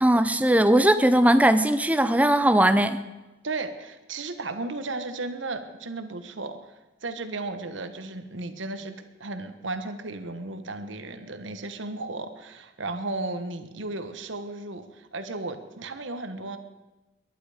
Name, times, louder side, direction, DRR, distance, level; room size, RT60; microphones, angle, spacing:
voice 1, 0.0-3.0, right 1 dB, 10° right, 12 dB, 0.6 m, -19 dB
voice 2, 3.4-6.7 7.0-8.9 9.2-16.6, right 2 dB, 85° right, 9 dB, 1.3 m, -34 dB
21.5 x 11.0 x 5.0 m, 1.1 s
head